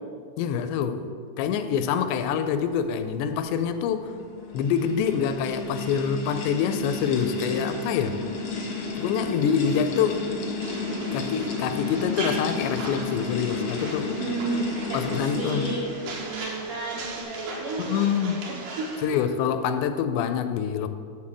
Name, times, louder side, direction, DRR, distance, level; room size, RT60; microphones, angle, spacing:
voice 1, 0.4-4.1 4.5-8.2 9.0-10.2 11.1-14.1 14.9-15.7 17.8-18.4 19.0-20.9, left 7 dB, 85° left, 10 dB, 2.7 m, -26 dB
sound 1, 4.0-16.2, left 3 dB, 70° left, 1.2 m, -32 dB
sound 2, 10.6-19.1, right 2 dB, 60° right, 2.8 m, -39 dB
voice 2, 14.2-19.3, right 3 dB, 80° right, -3 dB, 1.8 m, -33 dB
11.5 x 4.0 x 7.4 m, 2.2 s
omnidirectional pair, 5.0 m